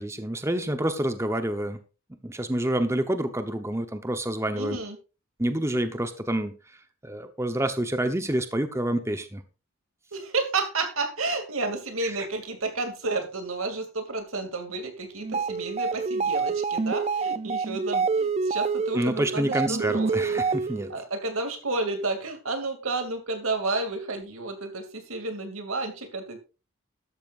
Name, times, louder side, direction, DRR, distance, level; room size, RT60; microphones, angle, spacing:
voice 1, 0.0-1.8 2.2-4.8 5.4-9.4 12.0-12.3 18.9-20.9, right 1 dB, 15° right, 8 dB, 0.9 m, -28 dB
voice 2, 4.5-5.0 10.1-20.4 20.9-26.4, right 3 dB, 85° right, 6 dB, 2.6 m, -31 dB
sound 1, 15.2-21.0, right 4 dB, 30° right, 0.4 m, -27 dB
12.5 x 12.5 x 2.5 m, 0.31 s
head